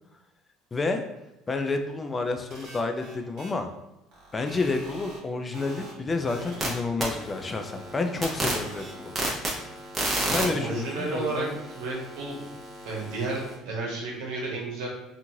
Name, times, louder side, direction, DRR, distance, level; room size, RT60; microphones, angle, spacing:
voice 1, 0.7-1.0 1.5-3.7 4.3-9.1 10.2-11.6, left 3 dB, 25° left, 6 dB, 0.3 m, -29 dB
sound 1, 2.5-3.5 4.1-5.2 5.5-5.9 6.3-7.2 7.8-8.9, right 2 dB, 60° right, 1.1 m, -44 dB
Light Switch, 6.2-6.7 7.0-13.5, right 1 dB, 15° right, 0.8 m, -33 dB
voice 2, 10.3-11.5 11.7-12.4 12.8-14.9, right 3 dB, 80° right, -2 dB, 1.0 m, -32 dB
3.0 x 2.4 x 2.7 m, 0.96 s
supercardioid pair, 105°, 0 cm